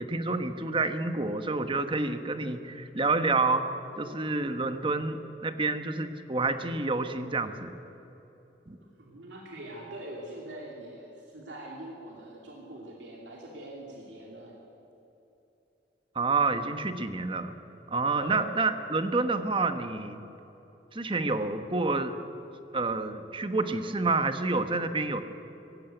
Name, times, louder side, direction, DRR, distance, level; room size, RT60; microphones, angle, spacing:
voice 1, 0.0-3.7 4.0-7.7 8.7-8.8 16.1-17.6 17.9-20.2 20.9-22.2 22.7-25.2, right 3 dB, 30° right, 9 dB, 1.1 m, -28 dB
voice 2, 8.8-14.6 18.1-18.5, right 1 dB, 80° right, -2 dB, 2.8 m, -43 dB
19.0 x 16.0 x 9.1 m, 2.9 s
head